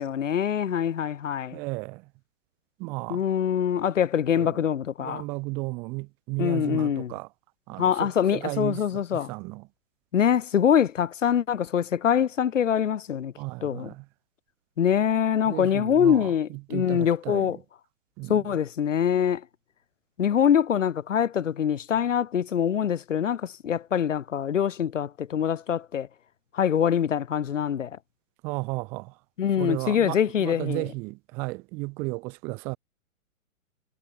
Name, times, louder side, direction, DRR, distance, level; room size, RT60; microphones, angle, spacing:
voice 1, 0.0-1.6 3.1-5.2 6.4-7.1 7.8-9.3 10.1-13.3 13.6-13.9 14.8-17.6 18.3-19.4 20.2-26.1 26.5-27.9 29.4-30.8, left 9 dB, 60° left, 2.5 m, -24 dB
voice 2, 1.5-2.0 2.8-3.2 4.4-4.6 5.0-7.3 7.7-9.7 13.4-14.0 15.4-17.5 18.2-18.4 28.4-29.1 29.6-32.8, right 27 dB, 5° right, 0.7 m, -34 dB
hypercardioid pair, 180°, 42 cm